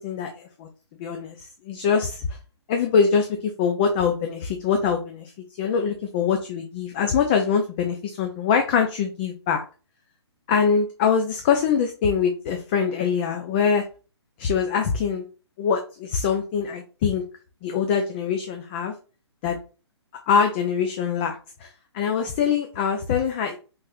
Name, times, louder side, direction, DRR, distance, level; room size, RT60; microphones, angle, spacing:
voice 1, 0.0-0.7 1.0-1.4 1.6-2.3 2.7-5.3 5.6-9.6 10.5-13.8 14.4-15.2 15.6-17.2 17.6-18.9 19.4-19.6 20.3-21.3 21.6-21.7 21.9-23.6, left 6 dB, 20° left, 4 dB, 0.4 m, -23 dB
5.4 x 3.3 x 2.6 m, 0.35 s
figure-of-eight pair, 130°, 15 cm